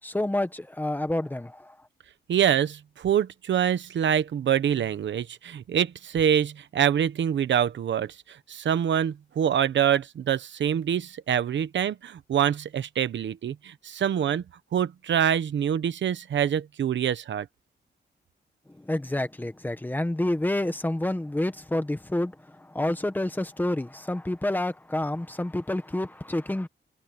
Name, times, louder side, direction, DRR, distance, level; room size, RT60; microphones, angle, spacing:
voice 1, 0.0-1.8 18.7-26.7, left 1 dB, 10° left, 1.4 m, -29 dB
voice 2, 2.3-14.4 14.7-17.5, right 9 dB, 85° right, 1.1 m, -25 dB
wide cardioid pair, 160°, 18 cm